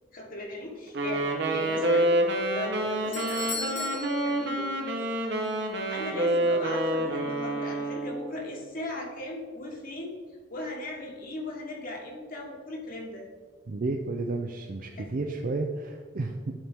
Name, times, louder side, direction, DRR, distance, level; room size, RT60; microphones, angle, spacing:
voice 1, 0.1-2.2 2.5-4.8 5.9-10.2 10.5-13.3 14.9-15.1, left 1 dB, 50° left, 0 dB, 1.3 m, -37 dB
Wind instrument woodwind instrument, 0.9-8.4, right 1 dB, 65° right, 1.0 m, -28 dB
Doorbell, 2.6-5.2 5.4-5.5 6.3-6.4, left 3 dB, 70° left, 1.1 m, -38 dB
voice 2, 13.7-16.5, right 3 dB, 50° right, 3 dB, 0.5 m, -32 dB
11.5 x 4.4 x 3.6 m, 1.5 s
head